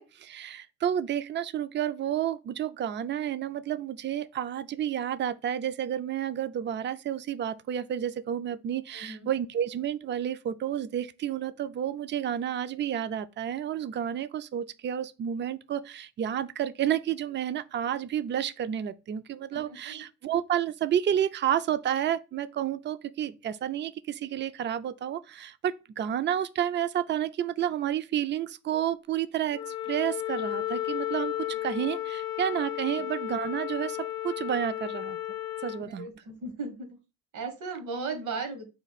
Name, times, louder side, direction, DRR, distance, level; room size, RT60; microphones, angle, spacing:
voice 1, 0.0-34.0 34.2-35.2 35.6-36.1, right 10 dB, 40° right, 0.4 m, -30 dB
voice 2, 8.9-9.3 19.5-20.0 35.8-36.9 37.3-38.7, right 4 dB, 80° right, 1.3 m, -36 dB
Wind instrument woodwind instrument, 29.5-35.8, left 14 dB, 60° left, 0.5 m, -33 dB
4.5 x 2.4 x 3.9 m
cardioid pair, 90°, 30 cm